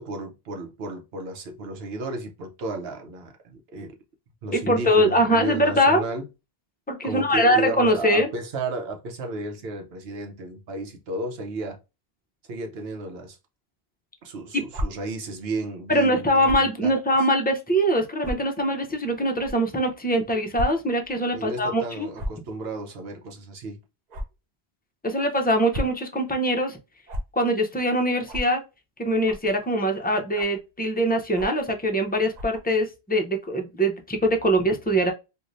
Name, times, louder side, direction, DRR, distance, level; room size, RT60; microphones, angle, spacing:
voice 1, 0.0-4.0 4.4-6.2 7.0-11.8 12.5-13.4 14.2-17.0 21.3-23.8, right 2 dB, 75° right, 1.0 m, -33 dB
voice 2, 4.5-6.0 6.9-8.3 15.9-22.1 25.0-26.8 27.3-28.6 29.0-35.1, equal, 15° left, 0.4 m, -22 dB
sound 1, 14.7-14.9 16.4-16.7 17.4-17.5 18.2-18.3 19.4-19.5 20.5-20.7 21.0-21.1 22.1-22.4 24.1-24.2 25.5-26.0 27.1-27.2 28.3-28.5 29.2-29.5 30.3-30.6 31.3-31.6 32.3-32.6, equal, 50° right, 0.7 m, -31 dB
2.5 x 2.5 x 3.0 m
omnidirectional pair, 1.0 m